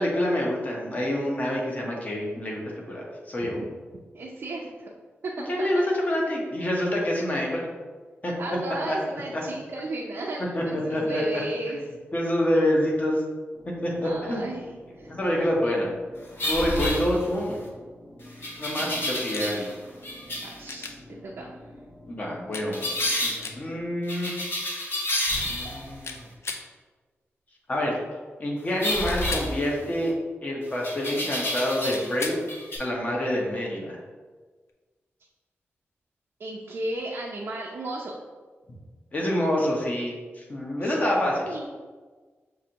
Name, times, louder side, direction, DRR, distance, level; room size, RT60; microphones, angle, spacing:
voice 1, 0.0-2.6 2.9-3.6 5.5-7.7 8.2-8.3 8.9-9.0 9.3-9.4 10.5-11.4 12.1-13.2 13.8-14.5 15.1-15.9 16.4-17.6 18.6-19.7 22.1-22.8 23.2-24.3 25.5-26.3 27.7-28.0 28.4-30.1 30.4-32.3 32.8-34.0 39.1-41.5, left 1 dB, 35° left, -2 dB, 1.0 m, -27 dB
voice 2, 3.9-4.9 5.2-5.8 8.4-11.8 14.0-14.7 15.0-15.1 18.3-18.5 20.4-21.5 36.4-38.1 40.8-41.0 41.4-41.7, right 2 dB, 60° right, -2 dB, 0.5 m, -34 dB
sound 1, 13.5-23.9, left 1 dB, 5° left, 0.9 m, -49 dB
sound 2, 16.4-17.6 18.4-19.7 20.0-20.6 22.7-23.4 24.1-25.9 28.8-30.1 30.8-32.2 32.4-32.8, left 1 dB, 55° left, 1.0 m, -29 dB
sound 3, 19.3-19.5 20.7-21.0 22.5-22.7 23.4-23.6 26.0-26.7 29.0-29.5 31.9-32.4 34.7-34.8, left 4 dB, 75° left, 0.4 m, -36 dB
6.1 x 2.6 x 2.9 m, 1.4 s
wide cardioid pair, 125°, 5 cm